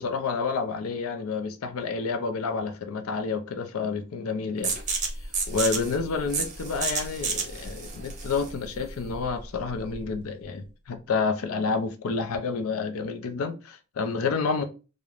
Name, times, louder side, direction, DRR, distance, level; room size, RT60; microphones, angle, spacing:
voice 1, 0.0-4.7 5.5-14.6, left 4 dB, 90° left, 0.4 m, -29 dB
sound 1, 4.6-10.1, right 4 dB, 35° right, 0.6 m, -31 dB
2.4 x 2.1 x 3.0 m
head